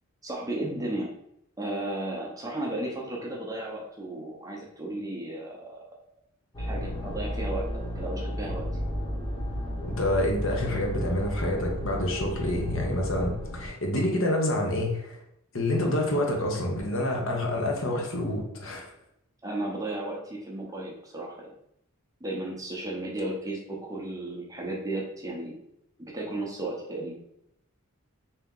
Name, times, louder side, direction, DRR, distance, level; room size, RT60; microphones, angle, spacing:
voice 1, 0.2-1.1 1.6-5.8 6.6-8.7 19.4-21.5 22.2-25.6 26.0-27.1, right 1 dB, 15° right, -2 dB, 0.6 m, -34 dB
sound 1, 6.5-13.7, equal, 20° left, 1.0 m, -33 dB
voice 2, 9.9-15.2 15.5-18.9, left 1 dB, 60° left, 0 dB, 0.9 m, -27 dB
3.5 x 2.8 x 3.7 m, 0.77 s
head